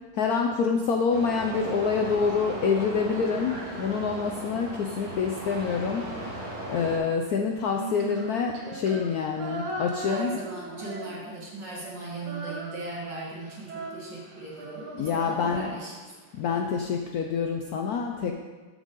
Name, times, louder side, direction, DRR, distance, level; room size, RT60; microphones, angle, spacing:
voice 1, 0.1-6.4 6.7-10.4 14.9-15.7 16.4-18.3, left 5 dB, 85° left, 3 dB, 0.8 m, -27 dB
sound 1, 1.1-7.0, right 1 dB, 35° right, 2.6 m, -37 dB
Female singing, 7.6-11.6 11.8-16.1, right 3 dB, 80° right, 2.2 m, -39 dB
voice 2, 10.1-15.9, right 3 dB, 55° right, -4 dB, 2.4 m, -38 dB
13.5 x 5.5 x 3.8 m, 1.3 s
omnidirectional pair, 2.3 m